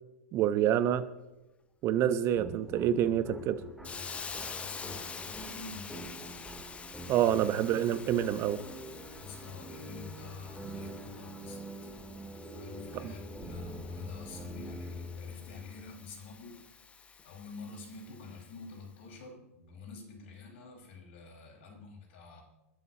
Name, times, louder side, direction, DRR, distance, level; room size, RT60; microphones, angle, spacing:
voice 1, 0.3-1.1 1.8-3.6 7.1-8.6 13.0-13.1, right 10 dB, 35° right, 13 dB, 1.0 m, -27 dB
sound 1, 2.4-16.0, equal, 5° right, 3.1 m, -45 dB
voice 2, 3.8-6.1 9.2-11.6 12.4-16.6 17.2-22.4, left 4 dB, 55° left, 1 dB, 5.0 m, -48 dB
Hiss, 3.8-18.6, left 5 dB, 15° left, 0.9 m, -47 dB
28.0 x 12.0 x 2.9 m, 1.0 s
figure-of-eight pair, 100°, 8 cm